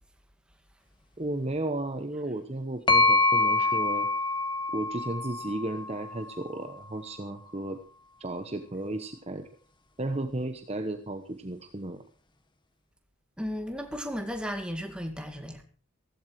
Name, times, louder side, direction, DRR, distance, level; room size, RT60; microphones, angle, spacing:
voice 1, 1.2-4.1 4.7-7.8 8.2-9.5 10.0-12.0, right 1 dB, 30° right, 1.1 m, -34 dB
sound 1, 2.9-6.6, left 3 dB, 20° left, 1.5 m, -26 dB
voice 2, 13.4-15.6, equal, 5° right, 2.2 m, -34 dB
16.0 x 15.5 x 4.8 m
head